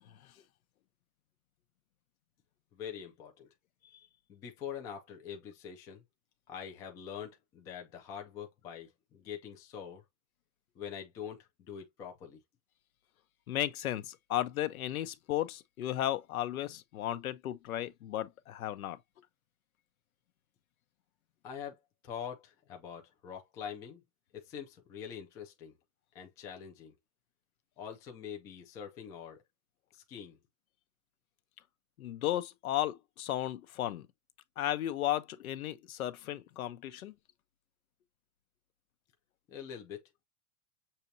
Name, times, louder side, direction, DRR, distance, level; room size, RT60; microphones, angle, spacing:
voice 1, 2.7-3.5 4.3-6.0 6.5-10.0 10.7-12.4 21.4-21.8 22.0-24.0 24.3-25.7 26.1-27.0 27.8-29.4 29.9-30.4 39.5-40.0, left 8 dB, 10° left, 0.3 m, -44 dB
voice 2, 13.5-19.0 32.0-34.1 34.6-37.1, left 13 dB, 80° left, 0.9 m, -34 dB
6.7 x 2.8 x 2.7 m
hypercardioid pair, 140°, 42 cm